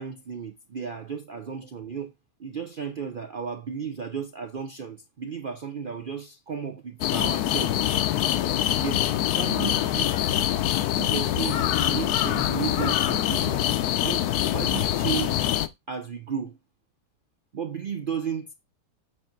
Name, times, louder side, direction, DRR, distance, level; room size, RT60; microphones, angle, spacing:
voice 1, 0.0-2.1 2.4-7.8 8.8-9.0 9.3-10.5 10.9-13.6 14.0-15.5 15.9-16.6 17.5-18.5, right 7 dB, 80° right, 0.4 m, -34 dB
sound 1, 7.0-15.7, left 12 dB, 70° left, 1.1 m, -24 dB
7.7 x 2.7 x 5.8 m
omnidirectional pair, 1.8 m